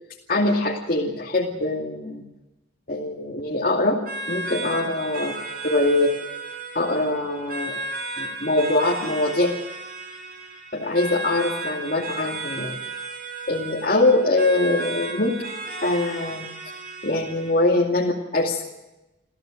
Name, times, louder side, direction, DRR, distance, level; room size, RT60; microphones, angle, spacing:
voice 1, 0.3-2.2 2.9-4.0 4.3-5.3 5.6-6.1 6.7-7.8 8.2-9.5 10.7-12.8 13.5-15.4 15.8-16.5 17.0-18.6, left 2 dB, 45° left, -3 dB, 2.5 m, -23 dB
sound 1, 4.1-17.6, right 2 dB, 50° right, 5.8 m, -34 dB
27.5 x 15.0 x 7.9 m, 0.99 s
head